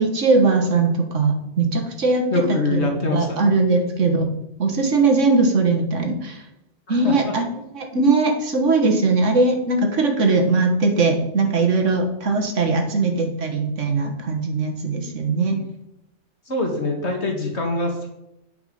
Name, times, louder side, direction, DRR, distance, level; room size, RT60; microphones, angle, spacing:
voice 1, 0.0-4.3 4.6-6.4 6.9-7.5 7.7-15.6, right 3 dB, 75° right, 3 dB, 1.8 m, -20 dB
voice 2, 2.3-3.5 6.9-7.3 16.5-18.1, left 2 dB, 60° left, 2 dB, 2.2 m, -24 dB
9.3 x 5.8 x 5.6 m, 0.85 s
omnidirectional pair, 1.3 m